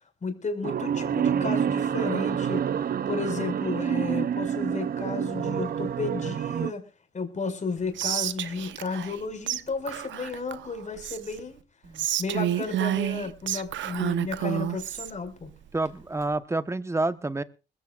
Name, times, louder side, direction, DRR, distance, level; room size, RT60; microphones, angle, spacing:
voice 1, 0.2-2.6 3.1-6.8 7.1-11.6 12.2-15.5, left 4 dB, 40° left, 6 dB, 5.6 m, -33 dB
sound 1, 0.6-6.7, right 8 dB, 50° right, 0.7 m, -28 dB
voice 2, 1.0-1.8 11.8-12.1 15.7-17.4, right 2 dB, 15° right, 13 dB, 1.1 m, -30 dB
Whispering, 8.0-9.2 9.5-9.6 9.9-11.4 11.9-15.1, right 11 dB, 70° right, 0.9 m, -30 dB
21.5 x 15.5 x 2.5 m, 0.33 s
cardioid pair, 90°, 20 cm